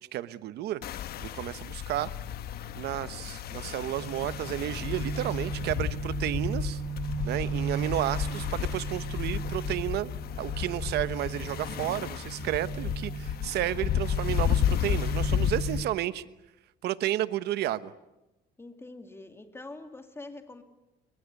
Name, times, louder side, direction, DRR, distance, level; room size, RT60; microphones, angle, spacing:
voice 1, 0.1-0.8 1.2-2.1 2.7-6.8 7.2-16.2 16.8-17.9, right 14 dB, 75° right, 15 dB, 1.1 m, -32 dB
sound 1, 0.8-15.8, left 10 dB, 65° left, 1.3 m, -32 dB
sound 2, 4.0-15.8, right 6 dB, 35° right, 5.2 m, -37 dB
voice 2, 18.6-20.6, left 2 dB, 15° left, 7 dB, 2.7 m, -44 dB
26.5 x 23.5 x 8.3 m, 0.98 s
cardioid pair, 110°, 17 cm